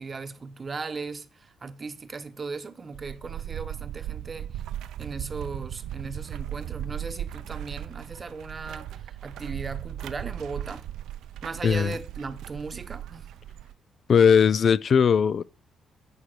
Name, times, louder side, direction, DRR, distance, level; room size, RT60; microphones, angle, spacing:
voice 1, 0.0-4.6 5.0-10.8 11.4-13.3, right 4 dB, 35° right, 0.9 m, -37 dB
sound 1, 2.9-13.7, right 11 dB, 85° right, 0.5 m, -37 dB
voice 2, 11.6-11.9 14.1-15.4, left 7 dB, 55° left, 0.3 m, -19 dB
8.4 x 6.5 x 4.4 m
cardioid pair, 90°, 0 cm